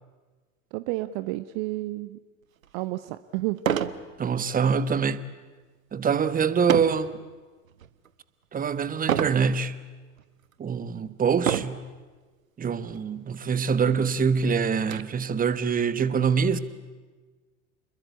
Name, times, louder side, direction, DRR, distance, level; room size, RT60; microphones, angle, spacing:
voice 1, 0.7-2.2 2.7-3.6, right 18 dB, 45° right, 0.9 m, -31 dB
sound 1, 2.6-2.7 3.6-4.0 4.5-4.8 6.7-7.1 7.7-8.1 9.1-9.4 10.2-10.3 11.4-11.9 12.9-13.0 13.3-13.4 13.9-15.0, right 9 dB, 75° right, 1.2 m, -27 dB
voice 2, 4.2-5.2 5.9-7.1 8.5-9.7 10.6-11.8 12.6-16.6, right 6 dB, 20° right, 1.2 m, -24 dB
29.5 x 22.0 x 8.3 m
figure-of-eight pair, 80°, 41 cm